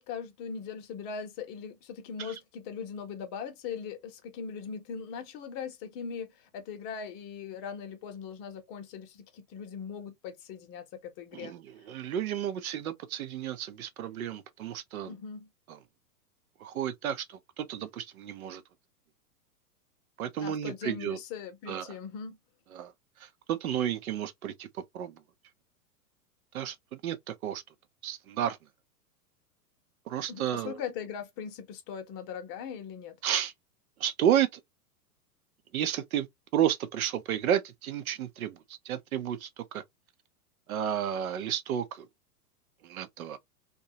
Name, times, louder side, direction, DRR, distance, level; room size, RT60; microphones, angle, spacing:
voice 1, 0.0-11.5 15.0-15.5 20.4-22.4 30.3-33.2, left 6 dB, 35° left, 0.8 m, -40 dB
voice 2, 11.9-15.1 16.6-18.6 20.2-21.2 21.7-21.9 22.7-22.9 23.5-24.7 24.9-25.1 26.5-27.6 28.0-28.6 30.1-30.8 33.2-33.5 34.0-34.6 35.7-36.3 36.5-38.6 38.9-39.8 40.7-42.1 42.8-43.4, right 10 dB, 65° right, 0.6 m, -31 dB
2.7 x 2.3 x 2.7 m
figure-of-eight pair, 105°, 46 cm